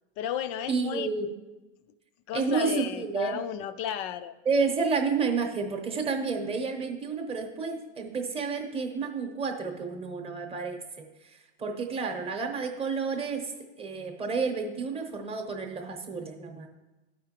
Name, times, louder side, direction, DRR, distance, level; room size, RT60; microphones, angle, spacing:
voice 1, 0.2-1.1 2.3-4.3, left 9 dB, 40° left, 13 dB, 0.4 m, -33 dB
voice 2, 0.7-1.3 2.3-3.4 4.4-13.5 13.8-16.7, right 5 dB, 15° right, 3 dB, 0.9 m, -30 dB
12.0 x 5.0 x 2.9 m, 1.1 s
supercardioid pair, 125°, 34 cm